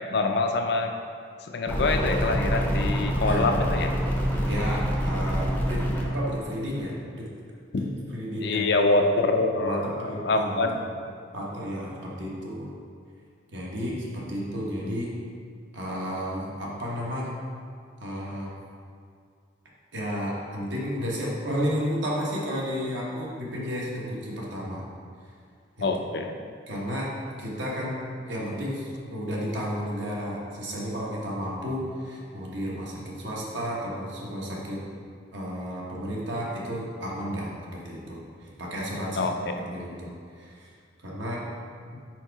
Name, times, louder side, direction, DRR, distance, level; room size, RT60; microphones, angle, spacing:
voice 1, 0.1-0.9 1.5-3.9 7.7-7.8 8.4-10.0 10.2-10.7 25.8-26.4 39.2-39.3, left 3 dB, 55° left, 4 dB, 0.4 m, -25 dB
sound 1, 1.7-6.1, equal, 10° left, 0.6 m, -26 dB
voice 2, 4.5-7.3 7.8-7.9 8.1-8.7 9.6-10.7 11.3-12.7 13.5-15.1 15.7-17.3 18.0-18.5 19.9-24.8 25.8-25.9 26.7-28.0 28.3-34.8 35.3-39.3 39.7-40.7 41.0-41.5 41.9-42.0, equal, 70° right, -4 dB, 1.2 m, -32 dB
4.6 x 4.6 x 4.5 m, 2.2 s
head